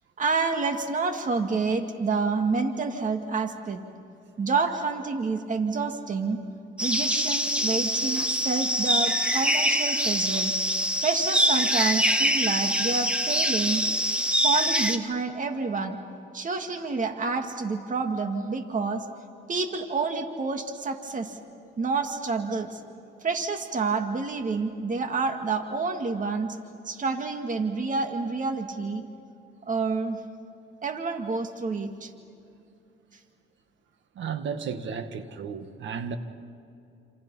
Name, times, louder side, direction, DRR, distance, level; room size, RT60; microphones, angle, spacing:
voice 1, 0.2-3.8 4.4-6.4 6.8-10.5 11.0-13.9 14.4-16.0 16.3-19.1 19.5-21.4 21.8-22.8 23.2-26.6 26.8-29.1 29.7-30.2 30.8-32.1, right 4 dB, 40° right, 5 dB, 2.2 m, -28 dB
sound 1, 6.8-15.0, equal, 5° right, 1.7 m, -24 dB
voice 2, 34.2-36.2, right 6 dB, 70° right, 9 dB, 1.9 m, -33 dB
28.5 x 28.0 x 5.7 m, 2.6 s
cardioid pair, 90°, 20 cm